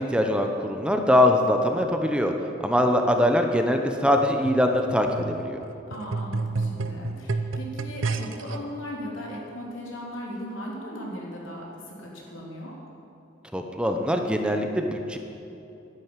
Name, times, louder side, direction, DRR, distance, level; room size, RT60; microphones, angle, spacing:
voice 1, 0.0-2.3 2.6-5.6 13.5-15.2, left 1 dB, 5° right, 4 dB, 0.9 m, -22 dB
sound 1, 4.2-8.6 9.3-9.4, right 3 dB, 80° right, 0.8 m, -31 dB
voice 2, 5.9-12.7, equal, 80° left, -3 dB, 3.7 m, -37 dB
11.5 x 10.5 x 9.0 m, 2.9 s
head